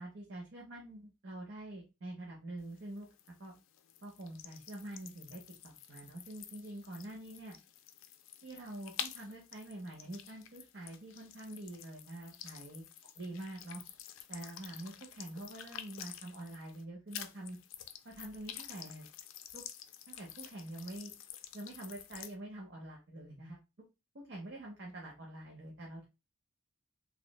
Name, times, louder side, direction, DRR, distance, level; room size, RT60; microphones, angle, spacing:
voice 1, 0.0-3.1 3.4-3.5 4.0-7.6 8.4-12.9 13.2-13.8 14.3-17.6 18.0-19.1 19.5-19.6 20.1-21.1 21.5-23.6 24.1-26.1, right 1 dB, 60° right, -1 dB, 0.7 m, -46 dB
sound 1, 2.6-16.8 17.1-22.3, left 10 dB, 75° left, 0.3 m, -49 dB
3.0 x 2.0 x 2.2 m, 0.26 s
head